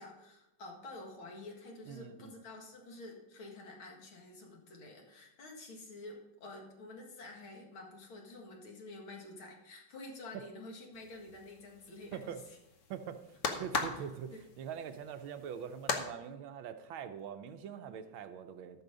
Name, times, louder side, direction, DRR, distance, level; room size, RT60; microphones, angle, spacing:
voice 1, 0.0-12.6 13.5-13.6 13.9-14.4, left 2 dB, 80° left, 0 dB, 2.7 m, -49 dB
voice 2, 1.9-2.3 10.3-10.4 12.1-12.4 12.9-18.8, right 8 dB, 80° right, 8 dB, 1.5 m, -43 dB
sound 1, 10.9-16.1, left 4 dB, 50° left, 1.1 m, -39 dB
13.5 x 6.2 x 5.1 m, 0.94 s
omnidirectional pair, 2.2 m